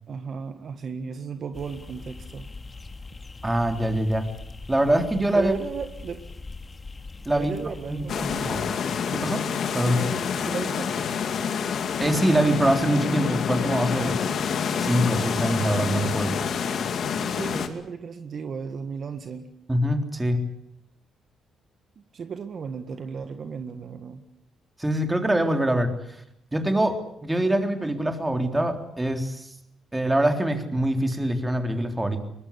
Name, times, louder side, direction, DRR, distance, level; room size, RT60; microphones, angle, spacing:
voice 1, 0.1-2.5 5.3-6.2 7.3-8.5 9.9-10.9 17.3-19.5 22.1-24.2, right 6 dB, 50° right, 8 dB, 1.7 m, -35 dB
sound 1, 1.5-8.8, left 3 dB, 25° left, 2.5 m, -42 dB
voice 2, 3.4-4.3 4.7-5.5 7.3-7.5 7.9-8.6 9.1-9.4 9.7-10.0 12.0-14.5 14.8-16.3 19.7-20.4 24.8-25.9 26.5-29.5 29.9-32.2, right 1 dB, 15° right, 6 dB, 3.7 m, -24 dB
sound 2, 8.1-17.7, left 7 dB, 60° left, 2.4 m, -27 dB
23.5 x 20.0 x 8.4 m, 0.74 s
cardioid pair, 90°, 0 cm